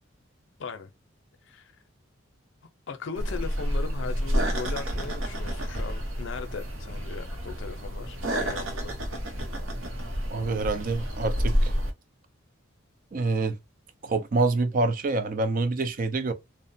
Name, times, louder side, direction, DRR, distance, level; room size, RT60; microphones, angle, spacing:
voice 1, 0.6-0.9 1.5-1.7 2.9-9.0, left 5 dB, 65° left, 0.5 m, -38 dB
sound 1, 3.2-11.9, equal, 80° right, 0.8 m, -29 dB
voice 2, 10.3-11.7 13.1-13.5 14.0-16.3, right 3 dB, 40° right, 0.4 m, -26 dB
2.8 x 2.1 x 2.6 m
head